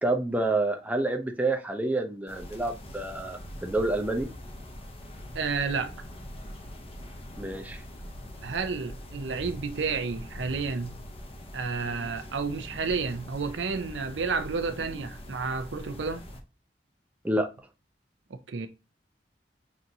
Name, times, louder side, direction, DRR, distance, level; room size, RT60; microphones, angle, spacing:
voice 1, 0.0-4.3 7.4-7.8 17.2-17.5, right 2 dB, 10° right, 0.5 m, -28 dB
sound 1, 2.3-16.4, left 1 dB, 35° left, 0.6 m, -43 dB
voice 2, 5.3-5.9 8.4-11.0 11.5-16.3 18.5-18.7, right 4 dB, 90° right, 0.5 m, -31 dB
6.0 x 2.6 x 2.7 m
head